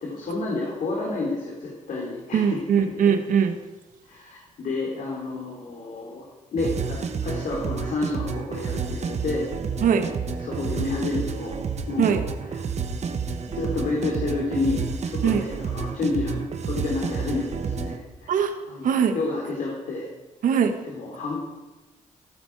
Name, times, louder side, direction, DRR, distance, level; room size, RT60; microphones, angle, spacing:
voice 1, 0.0-2.9 4.1-6.3 6.5-9.5 10.4-11.6 11.9-12.1 12.5-12.6 13.4-18.3 18.7-20.1 20.8-21.4, left 3 dB, 70° left, -2 dB, 3.6 m, -30 dB
voice 2, 2.3-3.5 9.8-10.1 12.0-12.2 15.2-15.4 18.3-18.5 18.8-19.2 20.4-20.8, right 7 dB, 80° right, 7 dB, 1.6 m, -21 dB
sound 1, 6.6-18.0, right 5 dB, 55° right, 1.4 m, -30 dB
16.0 x 13.5 x 4.8 m, 1.1 s
cardioid pair, 70°, 14 cm